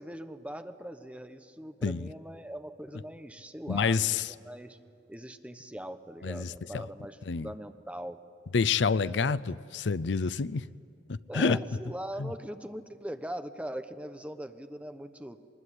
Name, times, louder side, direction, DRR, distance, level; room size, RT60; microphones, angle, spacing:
voice 1, 0.0-4.8 5.1-8.2 8.9-9.4 11.3-15.4, right 1 dB, 5° right, 1.0 m, -41 dB
voice 2, 3.7-4.3 6.2-6.5 7.3-7.5 8.5-10.6 11.1-11.6, left 5 dB, 75° left, 0.5 m, -27 dB
24.0 x 20.5 x 10.0 m
head